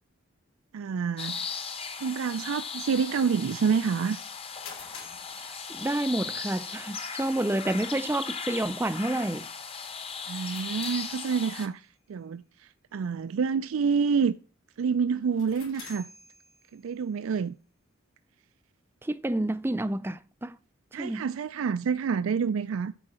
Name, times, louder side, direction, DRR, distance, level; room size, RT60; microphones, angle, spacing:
voice 1, 0.7-1.6 2.0-4.2 10.3-14.3 14.8-16.1 16.7-17.5 20.9-22.9, right 6 dB, 85° right, 0.4 m, -28 dB
sound 1, 1.2-11.7, left 5 dB, 30° left, 0.8 m, -38 dB
sound 2, 4.1-6.4 10.2-11.8 15.2-17.0, left 6 dB, 90° left, 3.2 m, -49 dB
voice 2, 5.7-9.5 19.0-20.6 21.0-21.3, right 1 dB, 10° right, 0.3 m, -29 dB
8.9 x 4.7 x 7.5 m
head